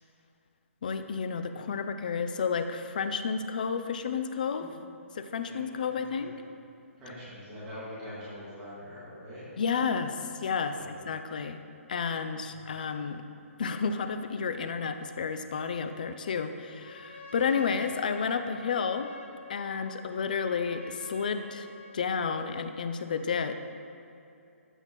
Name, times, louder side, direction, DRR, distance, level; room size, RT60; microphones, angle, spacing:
voice 1, 0.8-4.7 5.1-6.3 9.6-11.6 11.9-13.2 13.6-19.1 19.5-21.7 21.9-23.5, left 6 dB, 35° left, 9 dB, 0.4 m, -31 dB
voice 2, 7.0-9.5 10.7-10.9 12.4-12.7, left 1 dB, 10° right, -12 dB, 1.8 m, -44 dB
Trumpet, 16.7-22.2, left 2 dB, 50° left, 1.4 m, -48 dB
14.5 x 5.9 x 3.0 m, 2.7 s
hypercardioid pair, 175°, 8 cm